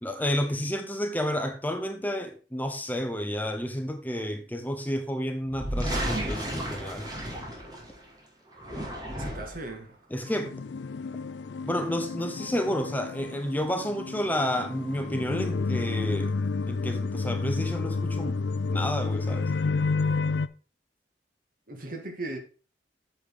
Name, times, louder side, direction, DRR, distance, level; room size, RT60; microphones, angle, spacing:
voice 1, 0.0-7.1 10.1-10.5 11.7-16.4 16.7-18.4 18.7-19.5, equal, 10° left, 0.7 m, -30 dB
sound 1, 5.5-8.0 8.5-9.7, equal, 20° right, 2.4 m, -33 dB
voice 2, 9.1-10.0 21.7-22.4, right 2 dB, 50° right, 1.8 m, -37 dB
sound 2, 10.3-20.5, left 4 dB, 75° left, 0.4 m, -30 dB
8.4 x 7.0 x 3.7 m
head